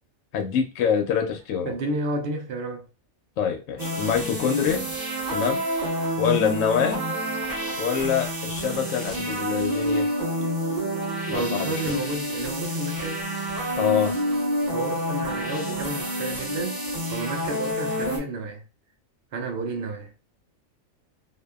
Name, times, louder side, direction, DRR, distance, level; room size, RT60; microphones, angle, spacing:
voice 1, 0.3-1.7 3.4-4.9 5.3-5.6 6.2-7.0 7.8-10.1 11.2-12.0 13.8-14.1, left 7 dB, 75° left, 0.9 m, -25 dB
voice 2, 1.7-2.9 11.3-13.3 14.7-18.6 19.3-20.1, right 2 dB, 60° right, 0.7 m, -31 dB
sound 1, 3.8-18.2, equal, 40° right, 1.0 m, -28 dB
2.7 x 2.3 x 2.2 m
omnidirectional pair, 1.4 m